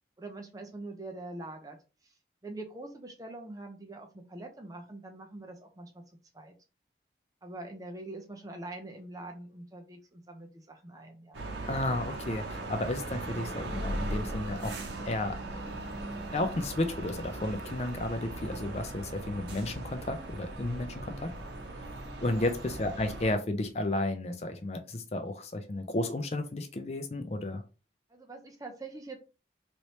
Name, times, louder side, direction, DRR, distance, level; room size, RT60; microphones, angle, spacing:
voice 1, 0.2-1.8 2.0-2.1 2.4-6.0 6.3-6.5 7.4-11.4 22.3-22.5 28.1-29.2, right 2 dB, 20° right, 3 dB, 0.6 m, -44 dB
sound 1, 11.3-23.3, right 2 dB, 85° right, 0.7 m, -39 dB
voice 2, 11.7-14.8 15.1-15.4 16.3-21.3 22.2-27.6, left 2 dB, 35° left, 7 dB, 0.4 m, -33 dB
3.1 x 3.1 x 2.7 m, 0.32 s
head